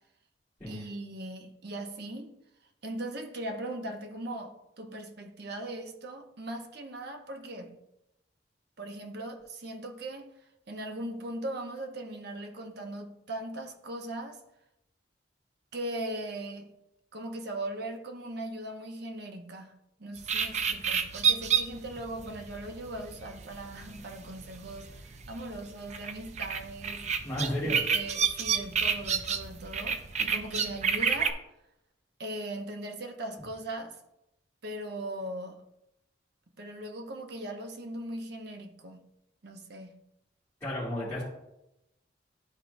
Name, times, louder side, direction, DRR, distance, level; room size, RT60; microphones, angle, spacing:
voice 1, 0.7-2.4 2.8-7.8 8.8-10.3 10.7-14.4 15.7-16.7 17.1-19.7 20.0-25.0 25.3-27.0 27.6-31.4 32.2-34.0 34.6-35.6 36.6-39.0 39.4-40.0, right 1 dB, 60° right, 0.9 m, -39 dB
sound 1, 20.2-31.3, right 6 dB, 40° right, 0.5 m, -30 dB
voice 2, 27.2-27.8 40.6-41.2, left 1 dB, 15° left, 2.3 m, -32 dB
12.0 x 4.4 x 2.6 m
head